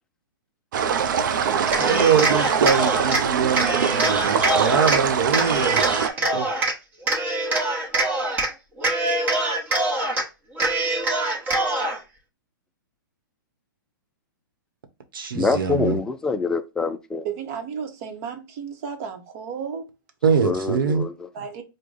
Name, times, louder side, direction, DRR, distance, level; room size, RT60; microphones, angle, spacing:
sound 1, 0.7-6.1, right 7 dB, 60° right, 0.5 m, -23 dB
Cheering, 1.6-3.2 3.6-5.0 5.3-6.7 7.1-8.5 8.8-10.2 10.6-12.0, right 2 dB, 15° right, 1.0 m, -24 dB
voice 1, 1.8-5.8 6.3-6.5 15.1-16.0 20.2-21.0, right 6 dB, 75° right, 1.0 m, -23 dB
voice 2, 15.3-17.3 20.4-21.3, left 4 dB, 5° left, 0.3 m, -25 dB
voice 3, 17.2-19.9 21.3-21.6, right 7 dB, 45° right, 1.0 m, -33 dB
5.0 x 2.2 x 3.8 m
hypercardioid pair, 135°, 11 cm